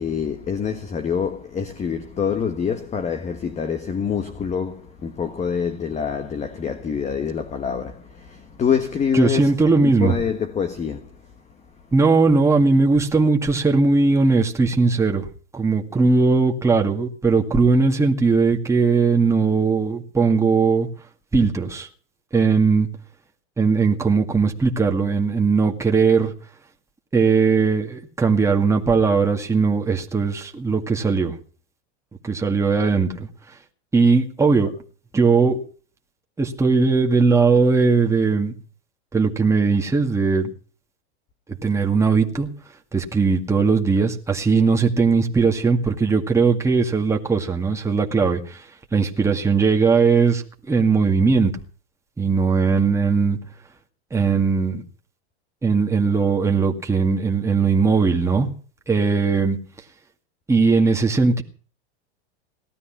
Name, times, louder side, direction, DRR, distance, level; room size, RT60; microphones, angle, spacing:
voice 1, 0.0-11.1, left 7 dB, 20° left, 1.4 m, -26 dB
voice 2, 9.1-10.2 11.9-15.3 15.5-20.9 21.3-21.9 22.3-22.9 23.6-26.3 27.1-31.4 32.2-33.3 33.9-34.7 35.1-35.6 36.4-38.5 39.1-40.5 41.6-42.5 42.9-48.7 48.9-51.5 52.2-53.4 54.1-54.8 55.6-58.5 58.9-59.6 60.5-61.4, right 4 dB, 10° right, 2.1 m, -19 dB
18.5 x 13.0 x 6.0 m
supercardioid pair, 140°, 34 cm